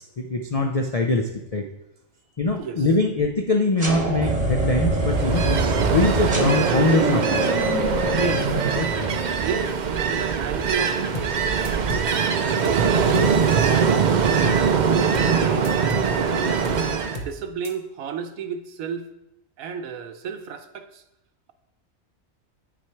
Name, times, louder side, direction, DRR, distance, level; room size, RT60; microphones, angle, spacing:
voice 1, 0.2-1.7 2.4-7.5 8.8-8.9, left 2 dB, 75° left, 4 dB, 0.3 m, -23 dB
voice 2, 2.6-2.9 8.1-8.7 9.4-11.7 12.3-13.1 13.9-16.0 17.1-19.1 19.6-21.0, right 6 dB, 80° right, 9 dB, 1.2 m, -32 dB
sound 1, 3.8-9.7, right 2 dB, 30° right, 1.2 m, -24 dB
Ocean, 5.0-17.2, right 6 dB, 60° right, 0.4 m, -22 dB
sound 2, 11.1-11.4 11.6-12.1 12.6-12.9 13.1-13.4 15.1-15.4 15.6-16.1 16.6-16.9 17.1-17.4 17.6-17.7, left 1 dB, 40° left, 0.7 m, -34 dB
8.2 x 6.0 x 4.6 m, 0.89 s
omnidirectional pair, 1.4 m